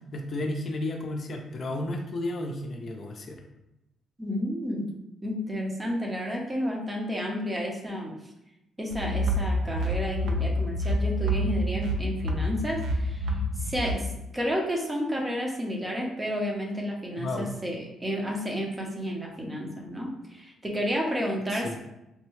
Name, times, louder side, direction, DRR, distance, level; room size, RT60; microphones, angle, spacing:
voice 1, 0.1-3.4 17.2-17.5 21.5-21.8, left 1 dB, 50° left, 2 dB, 0.4 m, -32 dB
voice 2, 4.2-4.9 5.2-8.1 8.8-14.1 14.3-21.8, equal, 20° right, -1 dB, 0.7 m, -31 dB
sound 1, 8.9-13.9, equal, 80° right, 0.4 m, -28 dB
3.3 x 2.2 x 3.1 m, 0.90 s
cardioid pair, 90°, 0 cm